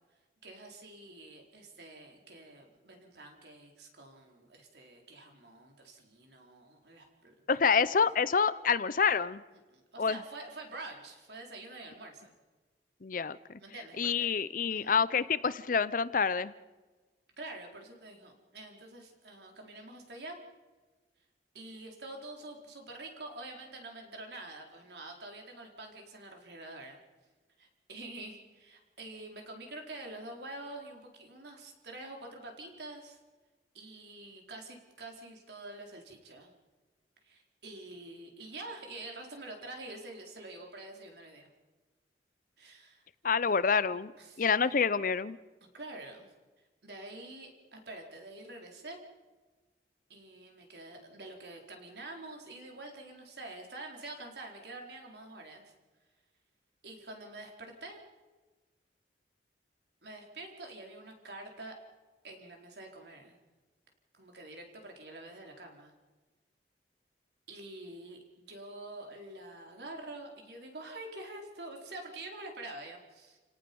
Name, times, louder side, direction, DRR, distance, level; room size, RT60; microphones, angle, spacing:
voice 1, 0.4-7.6 8.0-8.1 9.7-12.3 13.6-14.4 14.7-15.0 17.4-20.4 21.5-27.0 27.6-33.2 33.7-36.5 37.2-41.5 42.6-43.0 44.2-44.4 45.7-46.3 46.8-49.0 50.1-55.7 56.8-58.0 60.0-61.7 62.2-63.4 64.2-65.9 67.5-73.4, right 2 dB, 70° right, 2 dB, 4.3 m, -47 dB
voice 2, 7.5-9.4 10.0-10.2 13.0-13.4 14.0-16.5 43.2-44.1 44.4-45.4, left 5 dB, 50° left, 17 dB, 0.6 m, -27 dB
30.0 x 18.0 x 5.4 m, 1.3 s
head